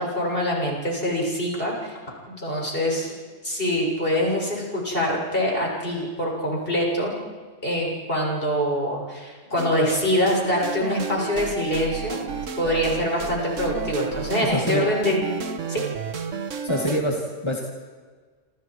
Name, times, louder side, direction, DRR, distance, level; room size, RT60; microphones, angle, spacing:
voice 1, 0.0-2.0 2.3-3.1 3.4-7.2 7.6-12.3 12.6-15.4 15.7-15.8, equal, 45° left, -2 dB, 7.3 m, -24 dB
sound 1, 9.6-17.0, right 6 dB, 80° right, 1.6 m, -32 dB
voice 2, 14.4-15.0 16.3-17.6, equal, 20° left, -1 dB, 2.5 m, -26 dB
29.5 x 28.0 x 4.9 m, 1.5 s
omnidirectional pair, 1.3 m